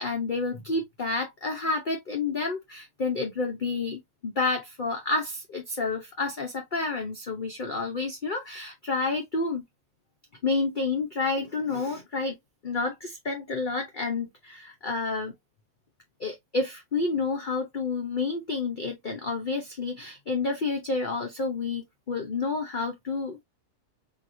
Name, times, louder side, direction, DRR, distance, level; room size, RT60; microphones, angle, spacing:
voice 1, 0.0-9.6 10.4-12.4 12.6-15.3 16.2-23.4, left 3 dB, 40° left, 0.8 m, -29 dB
4.5 x 2.8 x 2.6 m
omnidirectional pair, 1.7 m